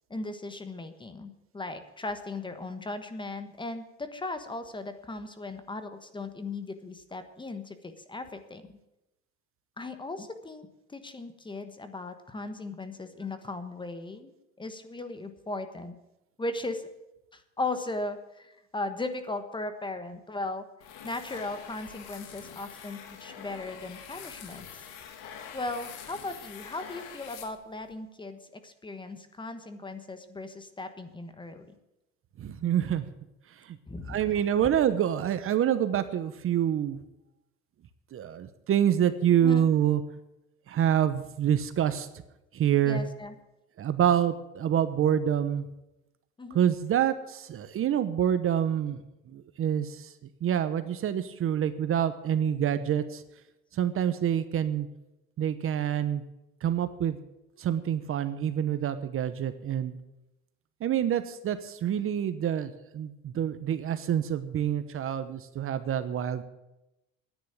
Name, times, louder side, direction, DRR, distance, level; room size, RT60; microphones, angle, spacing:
voice 1, 0.1-8.8 9.8-16.0 16.4-16.9 17.3-20.7 21.0-24.7 25.5-31.7 33.9-34.7 39.4-39.7 42.8-43.3 46.4-46.7, left 2 dB, 15° left, 9 dB, 1.3 m, -37 dB
sound 1, 20.8-27.9, left 8 dB, 80° left, 2.1 m, -45 dB
voice 2, 32.4-33.0 33.6-33.8 34.1-37.0 38.1-40.0 40.7-42.1 42.5-43.0 43.8-45.7 46.5-49.0 49.3-50.1 50.4-53.2 53.7-54.9 55.4-56.2 56.6-57.2 57.6-60.0 60.8-66.4, right 9 dB, 45° right, 12 dB, 1.0 m, -27 dB
10.5 x 9.6 x 9.0 m, 0.92 s
cardioid pair, 110°, 31 cm